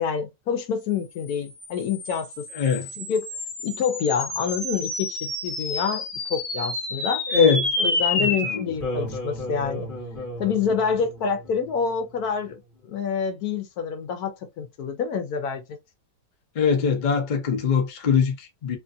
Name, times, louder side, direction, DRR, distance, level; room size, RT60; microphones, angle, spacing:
voice 1, 0.0-2.4 3.0-3.3 3.6-6.0 6.3-7.2 7.8-9.9 10.4-12.6 12.9-15.6, left 6 dB, 65° left, 1.1 m, -27 dB
sound 1, 1.3-12.0, left 2 dB, 40° left, 1.3 m, -30 dB
voice 2, 2.5-2.9 7.3-7.7 8.1-8.6 16.6-18.8, left 6 dB, 85° left, 0.4 m, -22 dB
3.0 x 2.4 x 2.6 m
omnidirectional pair, 1.9 m